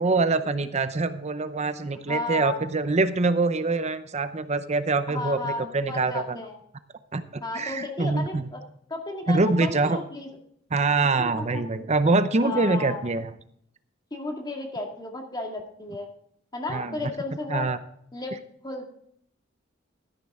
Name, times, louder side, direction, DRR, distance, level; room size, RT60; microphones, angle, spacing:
voice 1, 0.0-6.4 7.1-8.5 9.3-10.0 10.7-13.3 16.7-16.9 17.5-17.8, right 3 dB, 35° right, 12 dB, 0.7 m, -24 dB
voice 2, 2.1-2.6 5.1-6.6 7.4-8.6 8.9-10.3 11.2-11.7 12.4-13.1 14.1-16.1 16.5-17.7 18.1-18.4 18.6-18.9, left 2 dB, 20° left, 2 dB, 2.1 m, -33 dB
13.0 x 10.5 x 3.6 m, 0.67 s
head